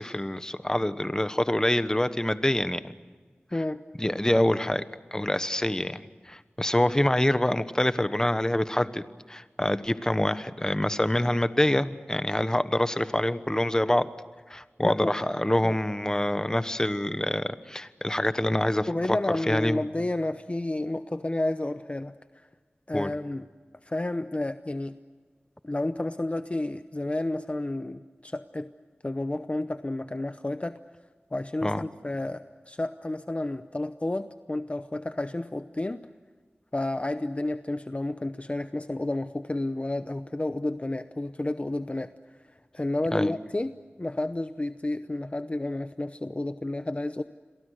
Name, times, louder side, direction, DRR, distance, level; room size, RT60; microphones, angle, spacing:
voice 1, 0.0-2.9 4.0-4.8 5.1-6.0 6.3-9.0 9.3-14.1 14.5-19.2 19.5-19.8 22.9-23.1 31.6-31.8 43.1-43.3, left 1 dB, 15° left, 12 dB, 1.1 m, -26 dB
voice 2, 3.5-3.8 14.8-15.1 15.6-15.8 18.9-22.1 22.9-23.5 23.8-25.0 25.6-28.7 29.0-30.8 31.3-36.1 36.7-42.1 42.7-47.2, left 2 dB, 35° left, 10 dB, 0.8 m, -31 dB
30.0 x 22.5 x 6.5 m, 1.5 s
wide cardioid pair, 60°, 4 cm